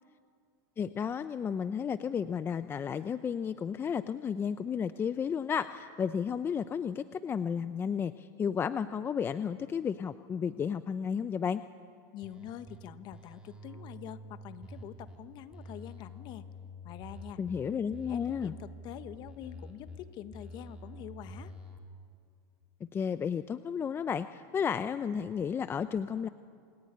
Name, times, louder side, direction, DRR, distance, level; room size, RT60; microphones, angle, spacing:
voice 1, 0.8-11.6 17.4-18.5 22.9-26.3, left 7 dB, 20° left, 12 dB, 0.7 m, -32 dB
voice 2, 12.1-16.4 16.8-17.4 18.1-21.5, left 11 dB, 45° left, 11 dB, 1.5 m, -45 dB
sound 1, 12.2-12.8 13.1-15.2 15.5-17.6 17.9-20.0 20.3-21.8, equal, 10° right, 4.9 m, -47 dB
27.5 x 21.0 x 9.9 m, 2.3 s
supercardioid pair, 135°, 11 cm